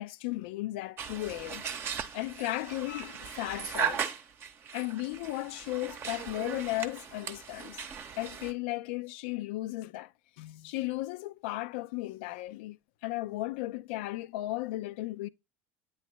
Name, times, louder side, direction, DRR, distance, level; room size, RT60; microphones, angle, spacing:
voice 1, 0.0-1.6 2.1-4.1 4.7-7.9 8.2-12.8 13.0-15.3, left 18 dB, 60° left, 0.4 m, -35 dB
sound 1, 1.0-8.5, right 7 dB, 35° right, 0.8 m, -38 dB
9.0 x 3.1 x 4.3 m
figure-of-eight pair, 70°, 7 cm